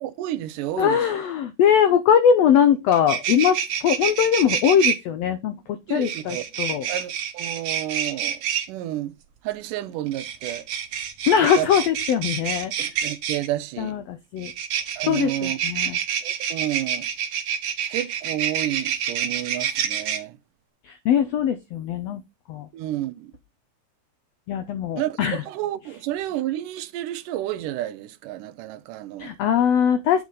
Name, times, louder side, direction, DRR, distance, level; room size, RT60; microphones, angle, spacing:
voice 1, 0.0-1.0 5.9-6.4 6.9-8.4 8.7-9.1 9.4-10.7 11.6-11.7 12.8-14.0 15.0-15.6 15.8-15.9 16.2-17.1 17.9-20.4 22.7-23.3 25.0-29.3, right 13 dB, 90° right, 2.2 m, -30 dB
voice 2, 0.8-6.9 11.3-12.7 13.8-14.5 15.0-16.0 20.8-22.2 22.5-22.7 24.5-25.4 29.2-30.2, left 8 dB, 85° left, 1.4 m, -21 dB
sound 1, 2.6-2.7 2.9-5.0 6.0-8.7 10.1-13.5 14.4-20.2, right 8 dB, 60° right, 1.8 m, -27 dB
8.4 x 4.0 x 4.7 m
omnidirectional pair, 3.8 m